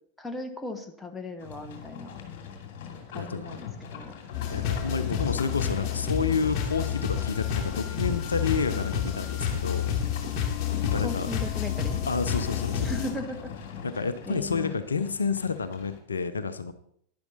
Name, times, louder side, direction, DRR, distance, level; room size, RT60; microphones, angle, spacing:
voice 1, 0.2-2.1 3.1-4.1 11.0-12.0 12.8-13.5 14.3-14.8, left 2 dB, 5° left, 5 dB, 1.3 m, -37 dB
Livestock farm animals working animals, 1.4-16.0, left 7 dB, 50° left, 2.4 m, -41 dB
voice 2, 3.1-3.6 4.5-9.9 10.8-11.3 12.1-12.9 13.8-16.7, left 5 dB, 75° left, 12 dB, 0.6 m, -30 dB
sound 1, 4.3-13.1, left 8 dB, 35° left, 2.5 m, -30 dB
11.5 x 10.5 x 4.1 m, 0.67 s
figure-of-eight pair, 90°, 0 cm